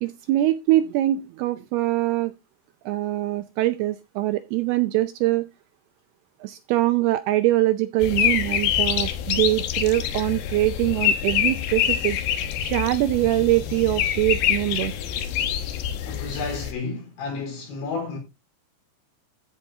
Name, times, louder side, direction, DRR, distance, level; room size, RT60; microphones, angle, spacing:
voice 1, 0.0-2.3 2.9-5.4 6.4-12.2 12.6-14.9, right 16 dB, 80° right, 2.3 m, -23 dB
sound 1, 8.0-16.7, left 10 dB, 70° left, 2.7 m, -25 dB
voice 2, 16.0-18.2, left 4 dB, 85° left, 6.5 m, -31 dB
13.5 x 8.1 x 2.8 m
omnidirectional pair, 5.1 m